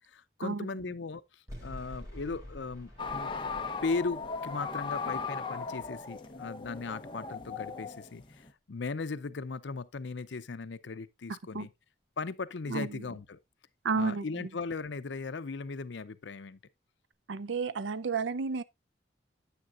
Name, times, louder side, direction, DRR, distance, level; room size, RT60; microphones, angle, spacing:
voice 1, 0.1-3.3 3.8-11.7 12.2-13.4 13.9-16.6, left 4 dB, 75° left, 0.6 m, -37 dB
sound 1, 1.5-6.7, equal, 20° right, 3.8 m, -49 dB
sound 2, 3.0-8.5, left 4 dB, 25° left, 0.8 m, -37 dB
voice 2, 12.7-13.0 13.8-14.5 17.3-18.6, right 4 dB, 80° right, 0.5 m, -32 dB
9.2 x 8.6 x 2.4 m
head